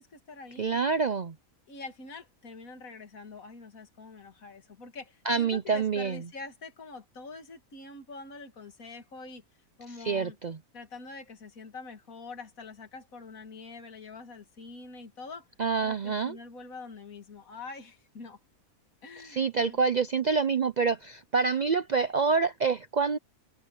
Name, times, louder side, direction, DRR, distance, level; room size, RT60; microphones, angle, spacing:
voice 1, 0.0-0.8 1.7-9.4 9.8-10.4 10.7-15.5 15.8-18.4 19.0-19.8, left 3 dB, 65° left, 2.7 m, -45 dB
voice 2, 0.6-1.3 5.3-6.2 10.0-10.6 15.6-16.4 19.2-23.2, right 5 dB, 80° right, 0.4 m, -27 dB
omnidirectional pair, 1.6 m